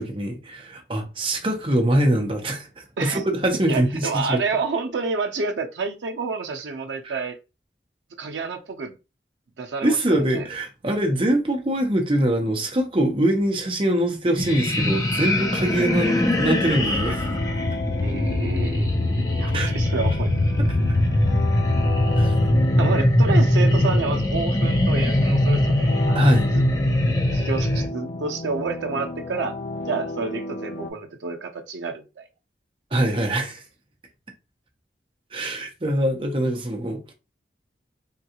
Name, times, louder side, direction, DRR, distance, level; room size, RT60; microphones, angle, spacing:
voice 1, 0.0-4.4 7.0-7.2 9.8-17.4 19.5-19.7 20.6-20.7 22.2-22.3 26.1-26.5 32.9-33.6 35.3-37.1, right 1 dB, 30° right, 0.7 m, -23 dB
voice 2, 3.7-7.4 8.2-8.9 9.6-10.0 10.3-10.5 16.1-16.2 18.0-18.9 19.4-20.3 22.7-26.2 26.5-26.6 27.0-29.6 29.9-32.2, right 4 dB, 85° right, 0.5 m, -29 dB
sound 1, 14.4-27.9, left 1 dB, 20° left, 0.5 m, -21 dB
sound 2, 16.2-30.9, left 2 dB, 75° left, 0.5 m, -33 dB
3.6 x 2.3 x 2.8 m
head